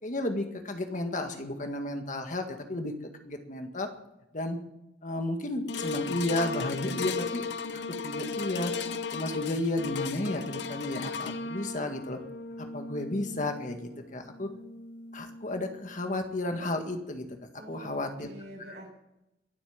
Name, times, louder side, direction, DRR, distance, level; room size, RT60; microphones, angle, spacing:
voice 1, 0.0-2.9 3.2-3.9 4.3-4.6 5.0-7.4 7.9-8.7 9.1-12.2 12.6-14.5 15.1-17.3 17.7-18.3, left 1 dB, 45° left, 5 dB, 1.9 m, -32 dB
sound 1, 5.7-16.1 16.6-16.7, left 4 dB, 70° left, 0.8 m, -36 dB
voice 2, 17.5-18.9, right 1 dB, 65° right, -1 dB, 7.7 m, -46 dB
22.5 x 8.6 x 7.4 m, 0.88 s
head